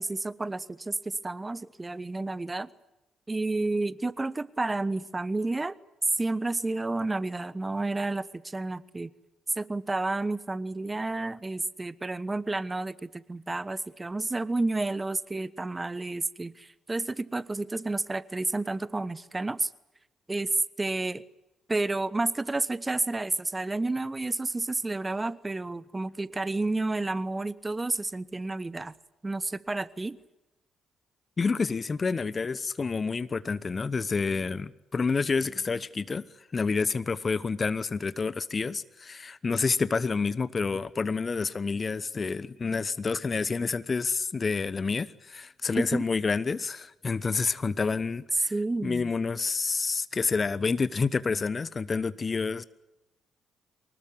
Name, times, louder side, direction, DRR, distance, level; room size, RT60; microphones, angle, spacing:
voice 1, 0.0-2.7 3.3-5.7 6.2-9.1 9.6-19.7 20.3-20.5 20.8-21.2 21.7-28.9 29.2-30.2 45.7-46.0 48.5-49.1, right 2 dB, 20° right, 1.1 m, -31 dB
voice 2, 31.4-36.2 36.5-48.5 48.8-52.6, left 4 dB, 35° left, 1.0 m, -28 dB
24.5 x 20.0 x 9.7 m
figure-of-eight pair, 45°, 0 cm